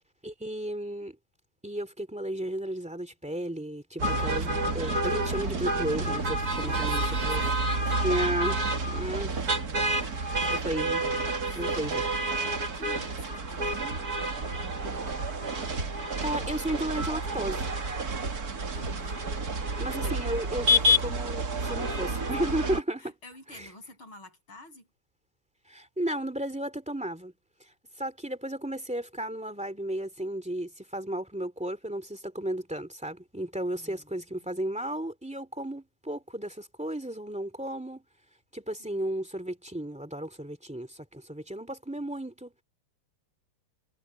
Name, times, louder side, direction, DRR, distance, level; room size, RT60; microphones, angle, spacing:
voice 1, 0.2-1.2 1.6-7.4 8.0-9.4 10.5-11.1 11.5-12.1 16.2-17.7 19.8-23.1 23.5-23.7 25.7-27.3 28.0-38.0 38.5-42.5, right 1 dB, 5° right, 2.4 m, -34 dB
sound 1, 4.0-22.8, right 1 dB, 45° right, 2.5 m, -29 dB
voice 2, 6.5-8.4 10.0-10.2 11.4-11.8 12.6-13.9 18.7-19.3 20.0-20.1 23.0-24.9 33.8-34.5, left 2 dB, 75° left, 9.0 m, -49 dB
omnidirectional pair, 2.3 m